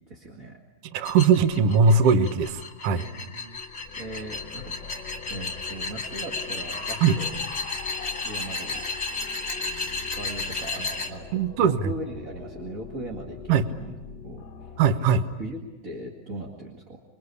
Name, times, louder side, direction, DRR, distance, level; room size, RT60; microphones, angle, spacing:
voice 1, 0.1-0.6 2.9-3.7 4.0-4.8 5.3-7.4 8.2-8.8 9.6-13.9 14.2-14.7 15.4-17.0, right 1 dB, 30° right, -1 dB, 2.0 m, -39 dB
voice 2, 0.9-3.0 7.0-7.2 11.3-11.9 13.5-13.7 14.8-15.2, right 5 dB, 65° right, 10 dB, 1.6 m, -20 dB
sound 1, 1.0-11.1, left 3 dB, 25° left, 2.4 m, -33 dB
sound 2, 3.4-14.9, left 6 dB, 55° left, 1.2 m, -43 dB
sound 3, 11.7-13.3 14.7-16.1, left 1 dB, 85° right, 8.4 m, -50 dB
27.5 x 22.5 x 8.3 m, 1.1 s
omnidirectional pair, 4.0 m